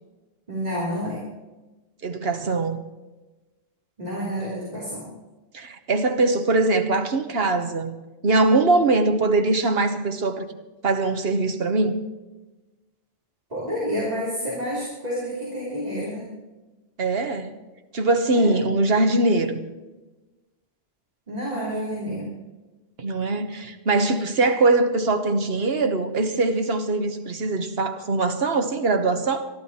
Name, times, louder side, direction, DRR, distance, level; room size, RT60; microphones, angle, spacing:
voice 1, 0.5-1.2 4.0-5.0 13.5-16.2 18.3-18.5 21.3-22.3, equal, 40° right, 3.7 m, -29 dB
voice 2, 2.0-2.8 5.5-8.0 8.2-10.5 10.8-12.0 17.0-17.5 17.9-19.6 23.0-29.5, right 3 dB, 70° right, 1.5 m, -22 dB
22.0 x 13.0 x 4.3 m
omnidirectional pair, 1.0 m